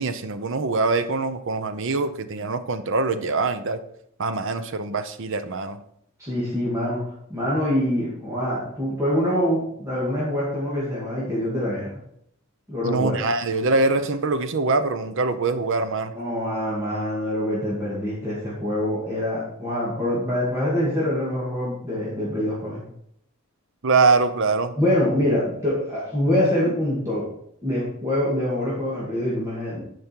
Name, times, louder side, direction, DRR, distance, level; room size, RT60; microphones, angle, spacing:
voice 1, 0.0-3.8 4.2-5.8 12.8-16.1 23.8-24.7, right 3 dB, 60° right, 10 dB, 0.7 m, -23 dB
voice 2, 6.2-7.0 7.3-11.9 12.7-13.3 16.1-22.8 24.8-27.2 27.6-29.8, left 1 dB, 15° right, -8 dB, 2.1 m, -25 dB
10.5 x 5.2 x 4.5 m, 0.71 s
head